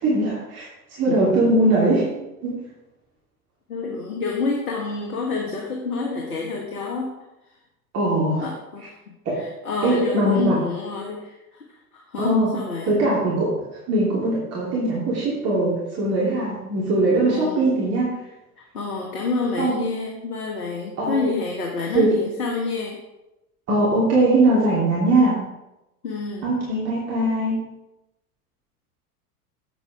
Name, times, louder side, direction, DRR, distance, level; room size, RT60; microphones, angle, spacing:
voice 1, 0.0-2.1 2.4-2.5 7.9-8.5 9.2-9.3 9.8-10.6 12.2-12.5 12.9-13.5 13.9-18.2 19.6-19.8 21.0-21.3 21.9-22.1 23.7-25.4 26.4-27.7, right 2 dB, 30° right, -6 dB, 3.0 m, -21 dB
voice 2, 3.7-7.1 8.4-8.9 9.3-11.6 11.9-12.9 17.3-17.7 18.6-23.0 26.0-26.5, left 4 dB, 75° left, 0 dB, 1.6 m, -28 dB
8.3 x 8.0 x 4.8 m, 0.95 s
figure-of-eight pair, 85°, 46 cm